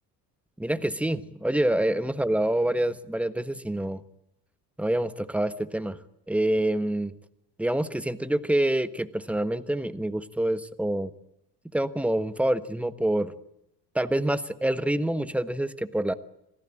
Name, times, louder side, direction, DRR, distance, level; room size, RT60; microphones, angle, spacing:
voice 1, 0.6-4.0 4.8-6.0 6.3-7.1 7.6-11.1 11.7-13.3 13.9-16.1, right 1 dB, 5° right, 12 dB, 1.4 m, -26 dB
26.5 x 17.5 x 9.0 m, 0.82 s
hypercardioid pair, 70°, 49 cm